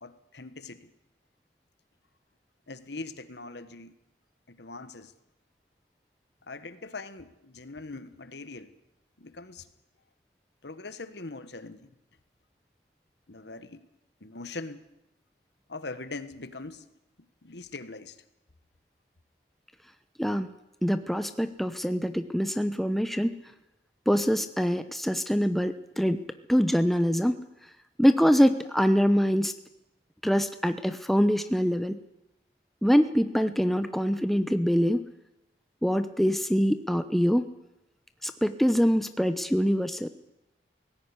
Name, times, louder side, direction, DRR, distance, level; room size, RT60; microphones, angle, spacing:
voice 1, 0.0-0.9 2.7-3.9 4.5-5.1 6.5-8.7 9.2-9.7 10.6-11.9 13.3-13.8 14.2-14.8 15.7-16.9 17.4-18.2, left 3 dB, 80° left, 12 dB, 1.5 m, -41 dB
voice 2, 20.8-23.3 24.1-26.2 26.5-27.4 28.0-29.5 30.2-32.0 32.8-35.0 35.8-37.4 38.2-40.1, equal, ahead, 9 dB, 0.9 m, -24 dB
18.5 x 16.5 x 9.9 m, 0.90 s
head